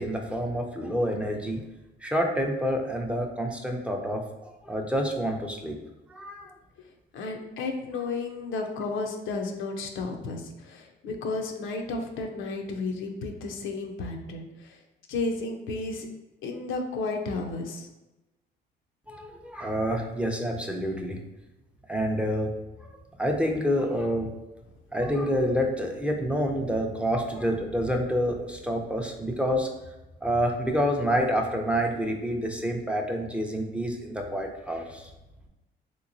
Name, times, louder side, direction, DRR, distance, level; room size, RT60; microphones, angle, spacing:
voice 1, 0.0-1.6 2.0-5.8 6.1-6.5 19.1-21.2 21.9-22.5 22.8-24.3 24.9-29.7 30.2-35.1, equal, 5° right, 1 dB, 0.5 m, -28 dB
voice 2, 7.1-14.8 15.1-16.1 16.4-17.9, left 3 dB, 80° left, 3 dB, 0.5 m, -33 dB
3.4 x 2.9 x 2.5 m, 1.0 s
cardioid pair, 90°, 20 cm